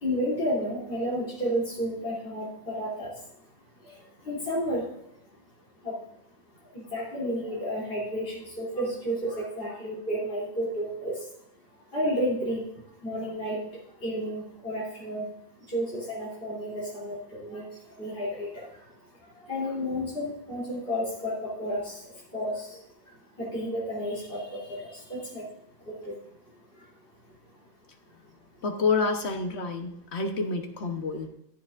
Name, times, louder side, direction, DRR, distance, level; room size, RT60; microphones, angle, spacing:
voice 1, 0.0-3.1 4.3-4.8 5.8-5.9 6.7-11.1 11.9-12.6 13.0-13.6 14.0-15.2 15.7-17.6 18.0-18.5 19.5-21.9 22.3-22.7 23.4-25.4 25.9-26.0, equal, 55° left, -7 dB, 3.7 m, -31 dB
voice 2, 28.6-31.3, left 4 dB, 75° left, 4 dB, 1.4 m, -28 dB
15.0 x 8.8 x 2.6 m, 0.74 s
omnidirectional pair, 1.1 m